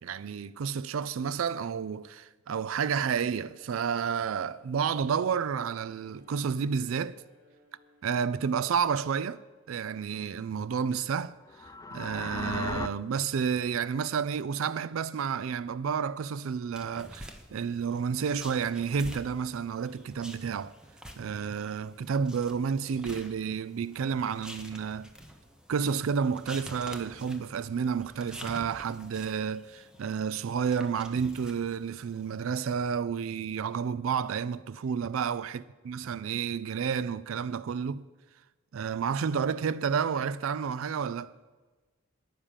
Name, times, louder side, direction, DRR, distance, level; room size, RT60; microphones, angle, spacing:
voice 1, 0.0-7.2 8.0-9.4 9.7-11.3 11.9-20.8 21.2-25.1 25.7-38.0 38.7-41.3, right 6 dB, 75° right, 0.4 m, -30 dB
Bowed string instrument, 3.0-11.4, left 2 dB, 55° right, 3.2 m, -64 dB
sound 1, 11.5-12.9, left 3 dB, 15° left, 0.3 m, -36 dB
sound 2, 16.7-32.4, equal, 5° right, 1.0 m, -48 dB
10.0 x 9.9 x 7.3 m
head